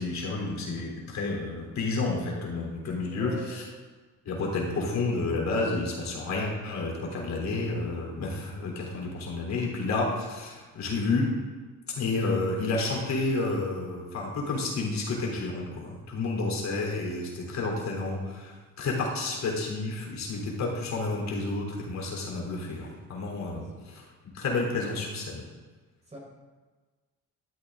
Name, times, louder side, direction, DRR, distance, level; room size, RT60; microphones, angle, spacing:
voice 1, 0.0-3.7 4.3-11.3 12.0-23.6 24.3-25.4, left 3 dB, 55° left, -2 dB, 3.5 m, -30 dB
voice 2, 3.1-3.6 23.5-23.7 26.1-26.2, right 1 dB, 20° right, -2 dB, 4.5 m, -43 dB
13.0 x 12.5 x 3.8 m, 1.3 s
cardioid pair, 130°, 32 cm